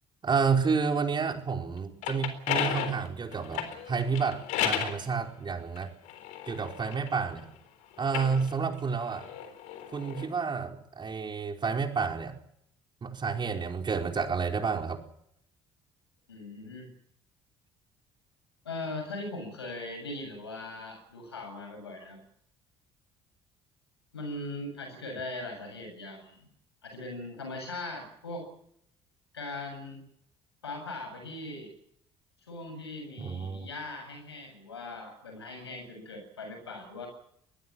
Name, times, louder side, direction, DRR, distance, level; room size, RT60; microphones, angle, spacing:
voice 1, 0.2-5.9 6.4-7.5 8.0-9.3 9.9-12.4 13.0-15.0 33.2-33.7, right 5 dB, 35° right, 4 dB, 4.6 m, -30 dB
sound 1, 1.8-5.0 5.8-7.4 8.0-10.3, left 9 dB, 70° left, 3.8 m, -34 dB
voice 2, 16.3-16.9 18.6-22.2 24.1-26.5 26.8-28.5 29.3-30.0 30.6-31.7 32.5-37.1, left 2 dB, 90° left, 5 dB, 7.5 m, -40 dB
22.5 x 20.5 x 7.6 m, 0.71 s
hypercardioid pair, 55°, 13 cm